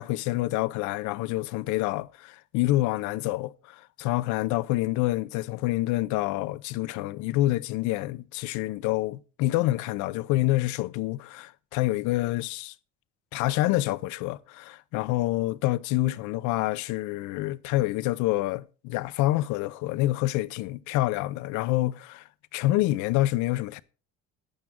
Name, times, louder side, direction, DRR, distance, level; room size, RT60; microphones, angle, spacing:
voice 1, 0.0-12.7 13.3-22.2 22.5-23.8, left 17 dB, 90° left, 0.7 m, -27 dB
12.0 x 9.0 x 3.6 m
cardioid pair, 140°, 29 cm